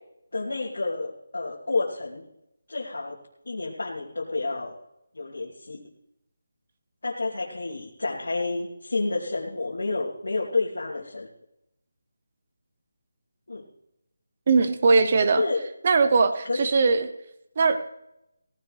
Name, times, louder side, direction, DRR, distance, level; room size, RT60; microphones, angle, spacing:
voice 1, 0.3-2.2 2.7-3.2 3.4-4.7 5.1-5.8 7.0-11.3 13.5-13.6 15.3-15.6 16.2-16.7, left 3 dB, 85° left, -4 dB, 2.9 m, -29 dB
voice 2, 14.5-15.4 15.8-17.1 17.6-17.8, right 4 dB, 30° right, 10 dB, 0.9 m, -20 dB
17.5 x 15.5 x 3.3 m, 0.84 s
figure-of-eight pair, 180°, 0 cm